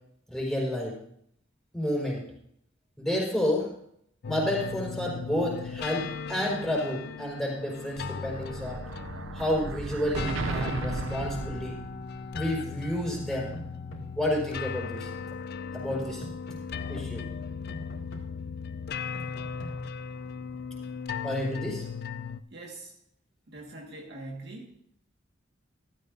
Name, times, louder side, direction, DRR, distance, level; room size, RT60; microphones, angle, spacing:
voice 1, 0.3-1.0 1.7-2.2 3.0-3.7 4.2-8.8 9.3-11.8 12.3-13.5 14.2-15.1 15.7-16.2 16.9-17.2 21.2-21.8, left 1 dB, ahead, -3 dB, 4.6 m, -30 dB
sound 1, 4.2-22.4, left 6 dB, 55° left, 0.4 m, -37 dB
Explosion, 7.7-12.4, right 4 dB, 80° right, 0.5 m, -36 dB
sound 2, 13.2-14.0 15.9-16.6 17.7-18.2 19.1-19.7, right 1 dB, 75° left, 2.3 m, -43 dB
voice 2, 22.5-22.9 23.5-24.8, right 2 dB, 60° right, 0 dB, 1.7 m, -43 dB
14.5 x 13.0 x 2.6 m, 0.70 s
head